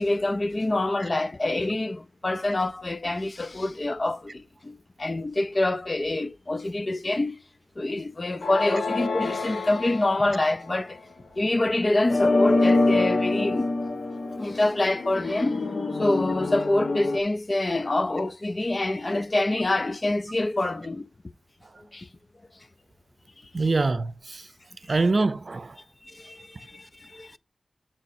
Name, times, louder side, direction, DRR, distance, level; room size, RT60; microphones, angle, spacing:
voice 1, 0.0-7.4 7.8-11.0 11.4-13.7 14.4-15.7 16.0-21.1 21.9-22.1 23.7-23.8 26.0-27.4, left 2 dB, 40° left, 0.5 m, -26 dB
sound 1, 8.4-10.9 12.1-17.2, left 2 dB, 70° left, 1.1 m, -26 dB
voice 2, 23.5-24.4 24.9-25.8, right 3 dB, 50° right, 0.6 m, -24 dB
10.5 x 6.4 x 2.7 m
wide cardioid pair, 60°, 0 cm